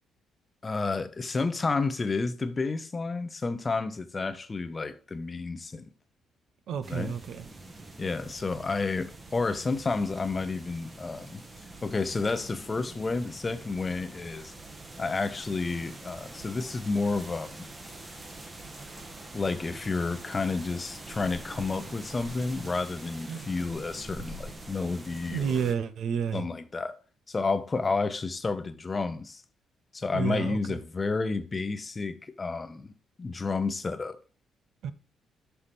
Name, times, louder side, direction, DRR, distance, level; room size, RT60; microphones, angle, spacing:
voice 1, 0.6-5.9 6.9-7.1 8.0-11.4 11.8-14.5 15.0-17.7 19.3-25.5 26.3-27.0 27.3-29.4 29.9-32.9 33.2-34.2, left 3 dB, 30° left, 0.7 m, -30 dB
voice 2, 6.7-7.5 23.3-23.5 25.3-26.5 30.1-30.8 34.8-34.9, right 7 dB, 70° right, 0.6 m, -31 dB
sound 1, 6.8-25.7, right 2 dB, 25° right, 1.1 m, -45 dB
5.7 x 5.7 x 3.3 m
cardioid pair, 90°, 0 cm